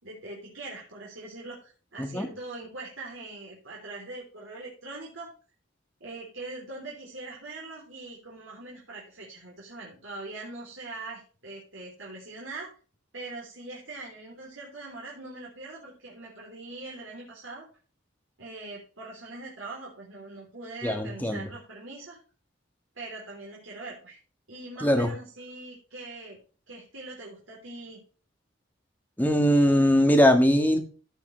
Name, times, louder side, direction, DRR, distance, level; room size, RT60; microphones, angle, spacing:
voice 1, 0.0-5.3 6.0-12.7 13.1-17.7 18.4-22.2 23.0-24.2 24.5-26.4 26.7-28.0, right 2 dB, 80° right, -4 dB, 3.5 m, -42 dB
voice 2, 20.8-21.5 24.8-25.1 29.2-30.8, equal, 10° left, 5 dB, 1.5 m, -21 dB
15.0 x 5.9 x 3.2 m, 0.37 s
head